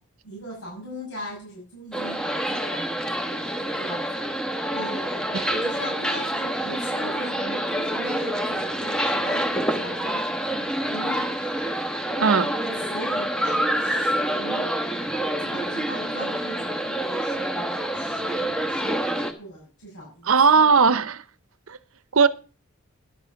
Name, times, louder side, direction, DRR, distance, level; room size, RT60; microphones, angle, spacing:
voice 1, 0.2-4.3 4.7-5.2 5.5-10.2 10.5-11.5 12.1-20.6, equal, 85° left, 6.2 m, -40 dB
sound 1, 1.9-19.3, right 1 dB, 5° left, 1.1 m, -27 dB
voice 2, 20.3-21.2 21.7-21.8 22.1-22.3, right 5 dB, 70° right, 0.8 m, -17 dB
11.5 x 7.9 x 5.8 m
head